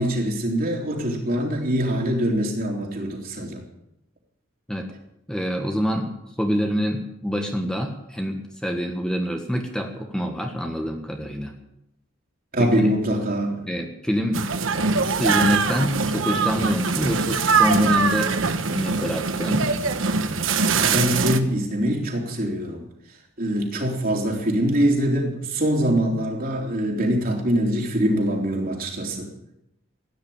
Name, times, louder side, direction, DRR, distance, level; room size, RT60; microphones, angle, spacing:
voice 1, 0.0-3.6 12.5-13.7 20.8-22.8 23.4-29.3, equal, 50° right, 1 dB, 3.7 m, -23 dB
voice 2, 5.3-6.1 6.4-11.6 12.6-12.9 13.7-14.5 15.1-18.4 18.7-19.7, equal, 5° left, 3 dB, 1.5 m, -26 dB
sound 1, 14.3-21.4, right 4 dB, 85° right, 1.3 m, -22 dB
16.0 x 10.0 x 8.7 m, 0.82 s
head